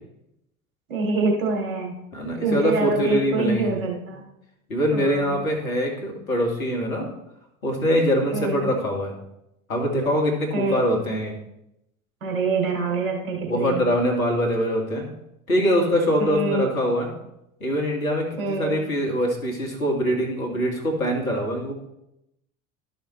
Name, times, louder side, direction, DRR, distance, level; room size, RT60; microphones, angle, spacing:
voice 1, 0.9-2.0 2.4-4.2 4.9-5.4 8.3-8.7 10.5-10.9 12.2-13.8 16.2-16.7 18.4-18.8, right 3 dB, 70° right, 0 dB, 2.7 m, -25 dB
voice 2, 2.1-3.7 4.7-7.1 7.6-9.1 9.7-11.3 13.2-15.0 15.5-17.1 17.6-21.7, equal, 80° left, 0 dB, 2.1 m, -23 dB
12.5 x 6.3 x 3.1 m, 0.83 s
figure-of-eight pair, 70°, 41 cm